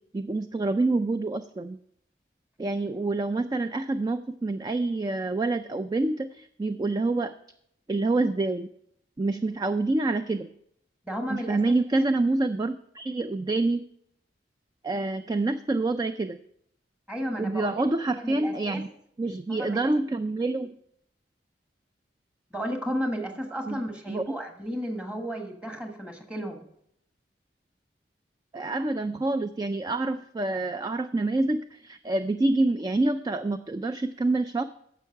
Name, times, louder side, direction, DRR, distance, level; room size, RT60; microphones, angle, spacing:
voice 1, 0.1-1.8 2.6-7.3 7.9-8.7 9.2-10.5 11.3-13.8 14.8-16.4 17.4-18.9 19.2-20.7 23.7-23.8 24.1-24.2 28.5-34.6, right 2 dB, 20° right, 10 dB, 0.3 m, -27 dB
voice 2, 11.0-11.7 17.1-17.8 18.1-18.8 19.5-19.8 22.5-26.6, equal, 5° right, 3 dB, 1.4 m, -33 dB
10.5 x 7.1 x 5.7 m, 0.72 s
head